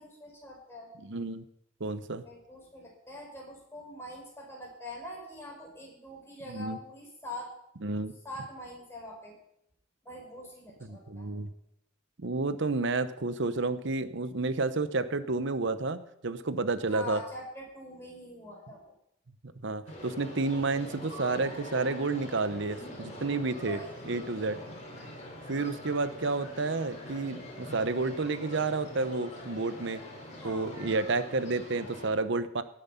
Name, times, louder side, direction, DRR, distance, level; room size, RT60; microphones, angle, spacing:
voice 1, 0.0-0.9 2.2-7.5 8.2-9.3 10.0-11.4 16.9-18.9 23.7-24.0 30.4-30.9, left 1 dB, 15° left, -2 dB, 5.0 m, -44 dB
voice 2, 1.0-1.4 1.8-2.2 6.5-6.8 7.8-8.1 10.9-11.5 12.2-17.2 19.6-24.6 25.5-30.0 30.4-32.6, right 3 dB, 65° right, 12 dB, 0.9 m, -30 dB
sound 1, 19.9-32.1, left 1 dB, 35° left, 4.1 m, -44 dB
18.0 x 7.8 x 5.7 m, 0.74 s
head